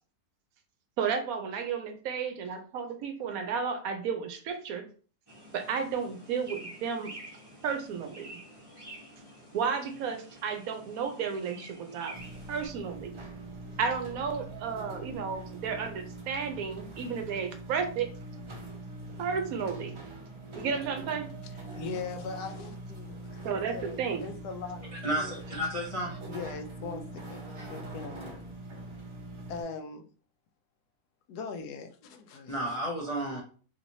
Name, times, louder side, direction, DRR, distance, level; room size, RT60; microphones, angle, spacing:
voice 1, 1.0-4.9 5.5-7.1 7.6-8.4 9.5-12.2 12.5-13.2 13.8-18.1 19.2-20.0 20.6-21.3 23.4-24.3, right 6 dB, 70° right, 6 dB, 1.0 m, -33 dB
sound 1, 5.3-12.7, right 1 dB, 20° right, 0.8 m, -49 dB
sound 2, 12.1-29.6, right 2 dB, 50° right, 0.3 m, -43 dB
voice 2, 21.7-25.3 26.3-28.4 29.5-30.0 31.3-32.6, left 5 dB, 85° left, 6 dB, 1.1 m, -41 dB
voice 3, 25.0-26.2 27.6-27.7 32.5-33.4, equal, 55° left, -2 dB, 0.3 m, -32 dB
3.1 x 2.9 x 2.6 m, 0.41 s
omnidirectional pair, 1.6 m